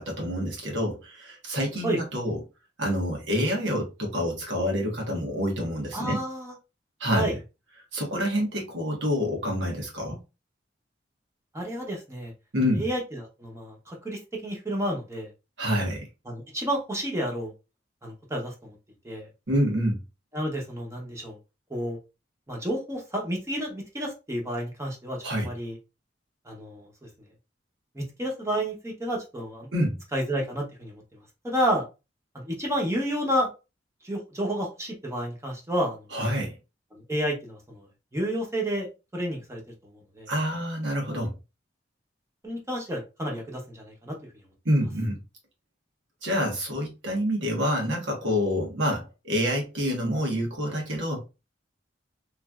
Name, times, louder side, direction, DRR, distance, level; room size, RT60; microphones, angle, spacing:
voice 1, 0.0-2.4 2.8-6.2 7.0-7.3 7.9-10.2 12.5-12.9 15.6-16.1 19.5-20.0 25.2-25.5 29.7-30.0 36.1-36.6 40.3-41.3 44.6-45.2 46.2-51.2, equal, 85° right, 1.3 m, -27 dB
voice 2, 5.9-6.5 7.1-7.3 11.5-12.3 12.7-15.3 16.3-17.5 18.0-18.7 19.0-19.3 20.3-21.4 21.7-22.0 22.5-25.8 26.5-26.9 27.9-29.7 30.1-31.0 31.4-31.8 32.3-33.5 34.0-36.1 36.9-37.9 38.1-38.9 39.1-39.6 39.9-40.3 42.4-44.2, equal, 15° right, 0.8 m, -30 dB
3.1 x 2.5 x 2.3 m
head